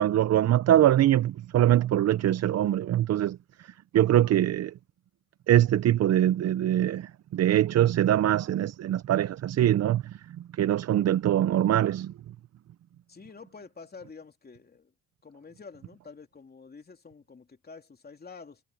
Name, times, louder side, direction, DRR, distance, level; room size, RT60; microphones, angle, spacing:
voice 1, 0.0-3.4 3.9-4.7 5.5-10.2 10.6-12.1, right 12 dB, 60° right, 0.7 m, -23 dB
voice 2, 13.1-14.9 15.2-18.6, left 4 dB, 30° left, 3.3 m, -48 dB
cardioid pair, 90°, 30 cm